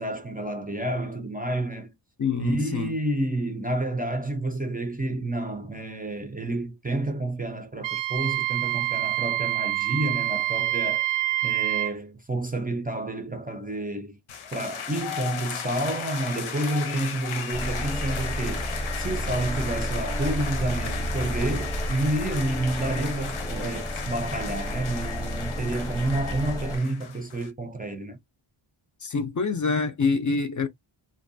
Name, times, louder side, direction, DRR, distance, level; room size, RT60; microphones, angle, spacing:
voice 1, 0.0-1.9 2.4-11.1 11.4-14.2 14.5-28.2, right 2 dB, 20° right, 0.4 m, -29 dB
voice 2, 2.2-2.9 29.0-30.7, left 4 dB, 40° left, 0.4 m, -26 dB
Wind instrument woodwind instrument, 7.8-11.9, right 16 dB, 85° right, 0.6 m, -26 dB
sound 1, 14.3-27.5, left 7 dB, 85° left, 0.7 m, -36 dB
sound 2, 17.5-26.8, equal, 10° left, 0.7 m, -31 dB
2.5 x 2.2 x 2.6 m
wide cardioid pair, 115°, 47 cm